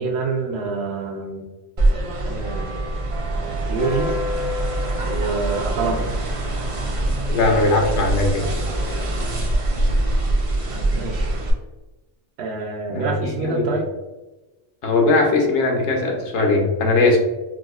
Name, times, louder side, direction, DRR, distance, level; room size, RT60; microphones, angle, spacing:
voice 1, 0.0-1.5 2.2-2.9 3.4-4.1 5.0-6.1 10.9-11.3 12.4-13.9, right 3 dB, 70° right, 2 dB, 0.8 m, -26 dB
sound 1, 1.8-11.5, right 1 dB, 45° right, 0.4 m, -23 dB
voice 2, 7.3-8.5 12.9-13.6 14.8-17.2, left 3 dB, 90° left, 1 dB, 1.0 m, -19 dB
4.8 x 2.0 x 2.3 m, 1.1 s
omnidirectional pair, 1.2 m